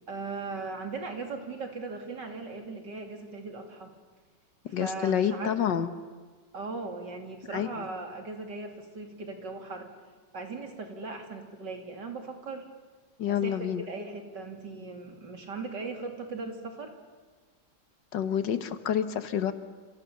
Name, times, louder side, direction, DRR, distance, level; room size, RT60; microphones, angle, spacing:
voice 1, 0.1-3.9 4.7-5.5 6.5-9.9 10.3-12.7 13.3-17.0, right 3 dB, 65° right, 4 dB, 3.5 m, -38 dB
voice 2, 4.7-5.9 7.5-7.7 13.2-13.9 18.1-19.5, left 9 dB, 70° left, 10 dB, 1.8 m, -28 dB
29.5 x 29.0 x 6.9 m, 1.4 s
omnidirectional pair, 2.1 m